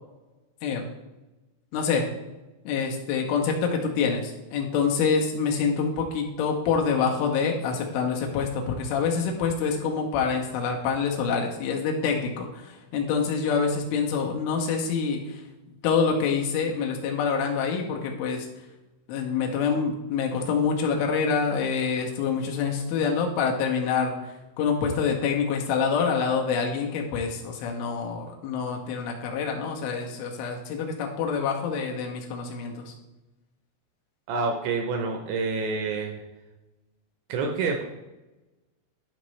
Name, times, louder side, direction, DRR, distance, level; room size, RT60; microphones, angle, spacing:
voice 1, 1.7-2.0 2.7-15.4 15.8-18.5 19.1-32.9, left 5 dB, 80° left, 1 dB, 3.3 m, -26 dB
voice 2, 34.3-36.2 37.3-37.8, right 4 dB, 80° right, 3 dB, 2.7 m, -27 dB
11.5 x 5.1 x 3.2 m, 1.1 s
omnidirectional pair, 5.7 m